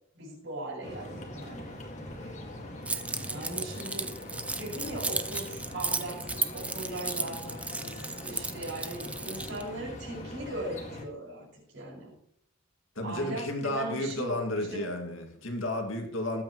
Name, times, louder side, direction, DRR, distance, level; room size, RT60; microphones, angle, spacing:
voice 1, 0.1-1.8 2.2-2.3 3.2-4.1 4.5-12.1 13.0-14.9, right 1 dB, 60° right, -4 dB, 6.0 m, -39 dB
sound 1, 0.8-11.0, left 1 dB, 35° left, 2.0 m, -42 dB
Keys jangling, 2.9-9.6, right 3 dB, 5° right, 0.4 m, -35 dB
voice 2, 13.0-16.4, left 1 dB, 75° left, 3 dB, 2.2 m, -32 dB
20.5 x 8.6 x 3.1 m, 0.69 s
head